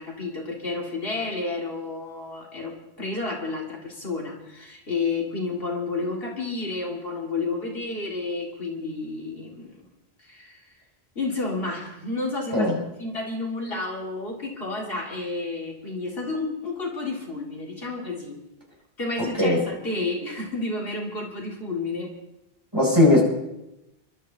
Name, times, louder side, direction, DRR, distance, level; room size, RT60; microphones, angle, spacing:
voice 1, 0.0-9.9 10.2-10.7 11.2-12.7 13.0-18.4 19.0-22.1, left 3 dB, 70° left, -1 dB, 2.4 m, -31 dB
voice 2, 22.7-23.2, left 1 dB, 25° right, -4 dB, 5.8 m, -18 dB
29.0 x 12.5 x 2.8 m, 0.90 s
omnidirectional pair, 1.0 m